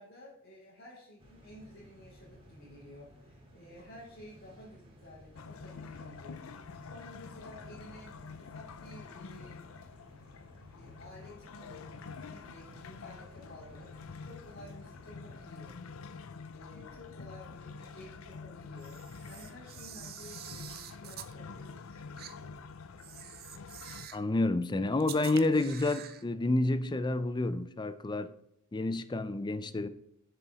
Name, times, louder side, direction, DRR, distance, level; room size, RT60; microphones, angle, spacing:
voice 1, 0.0-6.5 6.8-9.7 10.7-11.9 12.2-13.9 14.2-15.8 16.5-22.5, left 1 dB, 60° left, 3.1 m, -52 dB
sound 1, 1.2-15.5, equal, 25° right, 2.3 m, -57 dB
sound 2, 5.4-24.1, left 5 dB, 80° left, 0.6 m, -47 dB
Camera, 18.8-21.3 22.2-22.3 23.0-24.3 25.0-26.2, right 10 dB, 50° right, 0.6 m, -47 dB
voice 2, 24.1-28.3 28.7-29.9, left 2 dB, 20° left, 0.5 m, -29 dB
7.1 x 6.8 x 4.9 m
head